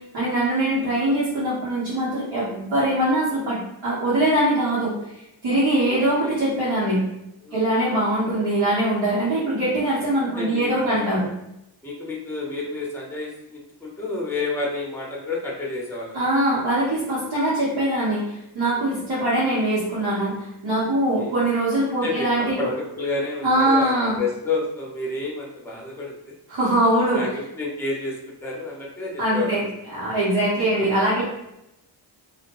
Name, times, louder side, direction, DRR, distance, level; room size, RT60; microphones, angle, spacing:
voice 1, 0.1-7.0 7.5-11.3 16.1-22.6 23.4-24.2 26.5-27.2 29.2-29.6 29.9-31.2, right 1 dB, 70° right, -11 dB, 1.3 m, -22 dB
voice 2, 5.8-6.4 7.4-7.6 10.2-11.1 11.8-16.2 18.7-18.9 20.9-21.3 21.9-26.3 27.1-29.7 30.4-30.9 31.2-31.3, left 3 dB, 5° left, -2 dB, 0.8 m, -30 dB
2.6 x 2.1 x 2.9 m, 0.85 s
cardioid pair, 55°, 48 cm